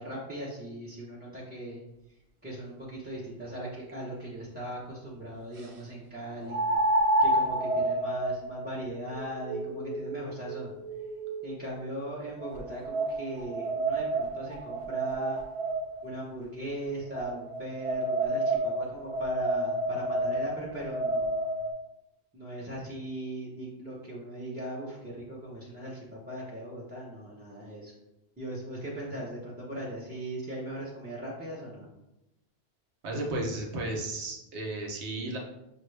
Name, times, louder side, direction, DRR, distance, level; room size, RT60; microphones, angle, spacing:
voice 1, 0.0-1.8 2.4-6.7 7.2-10.8 11.4-15.4 16.0-21.5 22.3-27.9 28.4-31.9, right 1 dB, 10° right, -7 dB, 0.6 m, -39 dB
sound 1, 3.9-4.0 6.5-11.7 12.4-16.1 17.1-21.7, right 1 dB, 50° right, 0.4 m, -30 dB
voice 2, 33.0-35.4, right 2 dB, 85° right, 0 dB, 1.1 m, -33 dB
6.1 x 2.3 x 3.2 m, 0.91 s
omnidirectional pair, 1.1 m